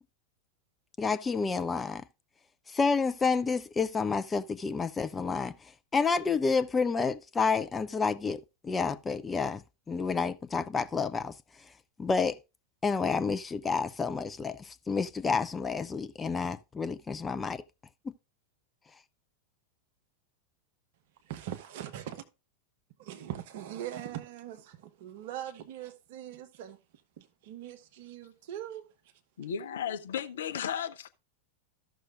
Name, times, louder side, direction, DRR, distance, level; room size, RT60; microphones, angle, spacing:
voice 1, 1.0-2.0 2.7-5.5 5.9-9.6 9.9-11.3 12.0-12.4 12.8-17.6, left 4 dB, 15° left, 0.4 m, -29 dB
voice 2, 21.2-22.2 23.0-26.8 27.2-28.8, right 11 dB, 50° right, 0.9 m, -41 dB
voice 3, 29.4-31.1, left 8 dB, 60° left, 0.6 m, -34 dB
14.5 x 6.2 x 2.5 m
figure-of-eight pair, 90°, 0 cm